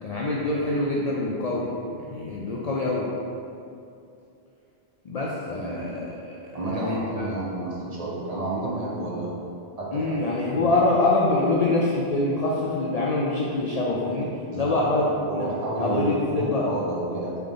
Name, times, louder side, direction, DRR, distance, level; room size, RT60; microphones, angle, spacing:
voice 1, 0.0-1.7 2.0-3.1 5.0-6.3 6.7-7.3 9.9-14.3 14.5-15.0 15.3-15.5 15.8-16.7, left 2 dB, 55° left, -5 dB, 0.4 m, -25 dB
voice 2, 5.6-6.1 6.5-9.3 9.8-10.8 14.5-17.4, right 2 dB, 40° right, -5 dB, 0.7 m, -31 dB
3.7 x 3.5 x 3.8 m, 2.6 s
omnidirectional pair, 1.1 m